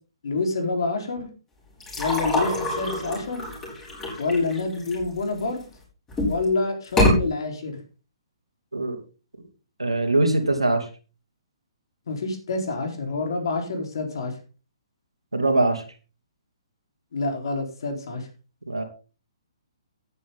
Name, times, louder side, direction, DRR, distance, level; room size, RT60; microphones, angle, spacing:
voice 1, 0.2-1.3 2.0-3.5 4.2-5.6 6.2-7.8 12.1-14.3 17.1-18.3, left 3 dB, 55° left, 4 dB, 4.1 m, -27 dB
sound 1, 1.8-5.6 6.1-6.5 6.8-7.2, left 1 dB, 15° left, 7.1 m, -25 dB
voice 2, 9.8-10.9 15.3-15.8 18.7-18.8, right 2 dB, 80° right, 5 dB, 2.9 m, -22 dB
13.5 x 10.0 x 3.8 m, 0.34 s
figure-of-eight pair, 125°, 3 cm